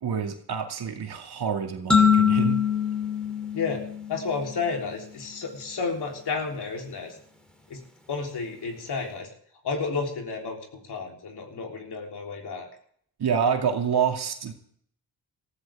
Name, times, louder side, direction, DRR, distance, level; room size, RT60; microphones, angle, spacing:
voice 1, 0.0-2.6 13.2-14.5, right 7 dB, 70° right, 3 dB, 2.4 m, -27 dB
sound 1, 1.9-4.5, left 7 dB, ahead, 2.9 m, -23 dB
voice 2, 4.1-7.1 7.7-7.8 8.1-9.3 9.6-12.7, left 4 dB, 75° left, 1 dB, 3.7 m, -31 dB
19.5 x 14.0 x 3.6 m, 0.63 s
cardioid pair, 65°, 40 cm